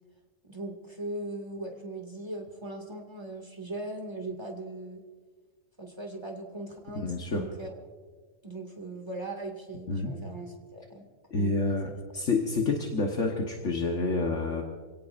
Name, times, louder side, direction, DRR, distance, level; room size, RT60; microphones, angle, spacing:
voice 1, 0.4-5.0 5.8-7.8 8.4-11.1 11.3-11.8, right 2 dB, 20° right, 2 dB, 2.3 m, -39 dB
voice 2, 7.0-7.4 9.9-10.1 11.3-14.6, left 3 dB, 60° left, 1 dB, 1.6 m, -28 dB
27.0 x 17.0 x 2.6 m, 1.5 s
omnidirectional pair, 1.5 m